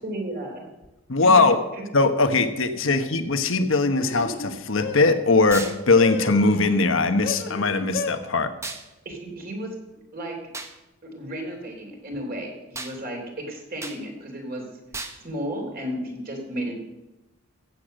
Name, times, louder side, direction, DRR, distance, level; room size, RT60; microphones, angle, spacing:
voice 1, 0.0-0.6 1.4-1.5 1.7-1.8 2.8-2.9 9.0-9.7 10.1-10.3 11.0-14.6 15.2-16.7, equal, 45° right, 1 dB, 3.2 m, -33 dB
voice 2, 1.1-1.6 1.9-8.5, left 3 dB, 70° left, 9 dB, 1.1 m, -20 dB
sound 1, 2.2-2.5 4.0-5.2 5.9-6.9 7.2-8.2, left 2 dB, 50° left, 1.3 m, -33 dB
sound 2, 5.5-5.8 8.6-8.8 10.5-10.7 12.7-13.0 13.8-14.0 14.9-15.2, right 3 dB, 15° right, 1.0 m, -34 dB
15.0 x 8.5 x 6.5 m, 1.0 s
head